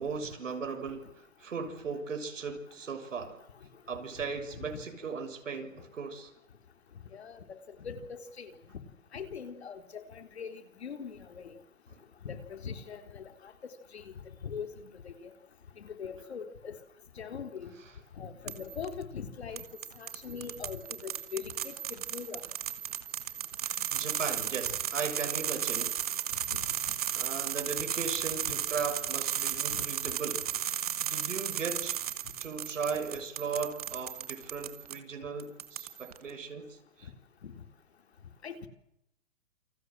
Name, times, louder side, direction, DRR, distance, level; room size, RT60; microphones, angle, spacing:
voice 1, 0.0-3.4 3.9-6.3 11.9-12.0 23.6-26.0 27.1-30.8 31.0-32.0 32.4-37.1, right 5 dB, 65° right, 7.0 m, -37 dB
voice 2, 7.1-8.5 9.1-11.5 12.2-13.5 13.9-14.1 14.4-15.3 15.8-16.8 17.2-17.7 18.2-19.6 20.0-22.4 26.5-26.6 29.7-29.8 37.4-37.6 38.4-38.7, left 6 dB, 50° left, 3.9 m, -42 dB
sound 1, 18.5-18.9 19.6-35.0 35.4-36.2, right 10 dB, 30° right, 1.7 m, -35 dB
29.0 x 26.0 x 7.9 m
hypercardioid pair, 175°, 40 cm